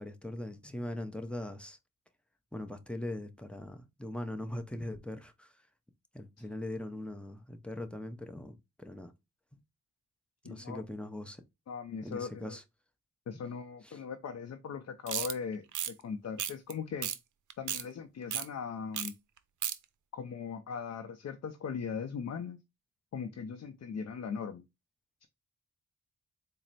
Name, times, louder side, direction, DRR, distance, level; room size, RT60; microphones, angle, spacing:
voice 1, 0.0-1.8 2.5-5.7 6.1-9.1 9.5-9.6 10.4-11.4 12.0-12.6 13.3-13.4 13.8-14.0, left 1 dB, 5° left, 0.6 m, -41 dB
voice 2, 10.4-10.8 11.7-12.6 13.3-17.1 17.6-19.1 20.1-22.6 23.1-24.6 25.2-25.3, left 6 dB, 55° left, 0.5 m, -39 dB
sound 1, 15.1-15.3 15.7-15.9 16.4-16.7 17.0-17.2 17.5-17.8 18.3-18.5 18.9-19.1 19.4-19.8, right 10 dB, 70° right, 0.5 m, -34 dB
4.2 x 2.0 x 3.9 m
cardioid pair, 60°, 31 cm